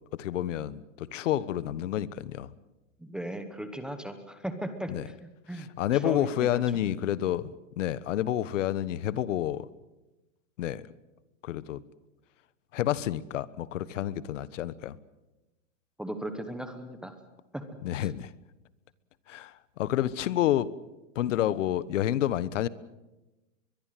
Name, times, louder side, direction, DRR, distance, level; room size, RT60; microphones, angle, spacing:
voice 1, 0.1-2.5 4.9-5.0 5.8-9.7 10.6-10.9 11.4-11.8 12.7-15.0 17.8-18.3 19.3-20.7 21.1-22.7, left 12 dB, 70° left, 1.3 m, -29 dB
voice 2, 3.0-5.2 5.5-5.7 6.0-6.6 16.0-17.1 17.5-17.6 17.9-18.1, right 1 dB, ahead, 1.0 m, -37 dB
22.5 x 22.5 x 7.7 m
supercardioid pair, 170°, 39 cm